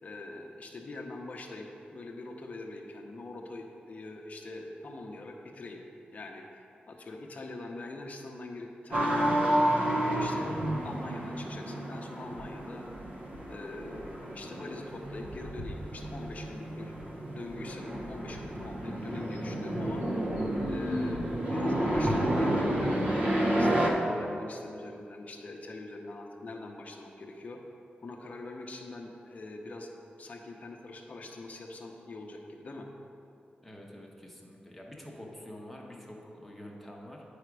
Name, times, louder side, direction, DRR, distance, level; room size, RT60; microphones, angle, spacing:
voice 1, 0.0-5.8 6.1-10.5 10.8-12.9 13.5-16.9 17.3-20.0 20.7-27.6 28.0-29.9 30.2-32.9, left 2 dB, 45° left, 1 dB, 0.8 m, -43 dB
sound 1, 8.9-23.9, right 1 dB, 45° right, 0.8 m, -30 dB
voice 2, 33.6-37.2, left 1 dB, 5° left, -2 dB, 0.9 m, -47 dB
9.5 x 5.0 x 4.7 m, 2.7 s
wide cardioid pair, 175°, 3 cm